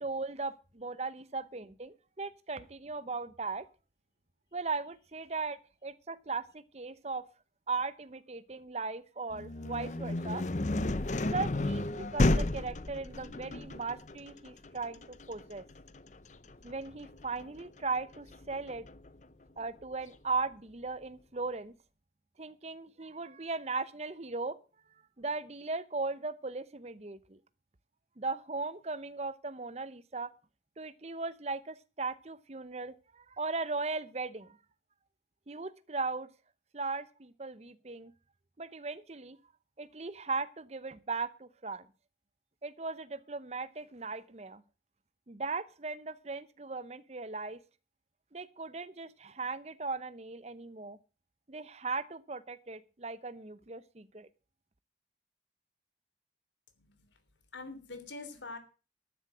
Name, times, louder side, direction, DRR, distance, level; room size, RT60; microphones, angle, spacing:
voice 1, 0.0-3.7 4.5-7.2 7.7-10.4 11.2-15.6 16.6-18.9 19.6-21.7 22.4-24.6 25.2-27.4 28.2-30.3 30.8-34.6 35.5-36.3 36.7-38.1 38.6-39.4 39.8-41.9 42.6-44.6 45.3-47.6 48.3-51.0 51.5-54.3, right 3 dB, 35° right, 15 dB, 0.8 m, -38 dB
sound 1, 9.3-19.1, left 2 dB, 40° left, 0.7 m, -33 dB
voice 2, 56.7-57.2 57.5-58.6, left 3 dB, 85° left, 9 dB, 3.2 m, -45 dB
11.5 x 10.5 x 6.1 m, 0.34 s
head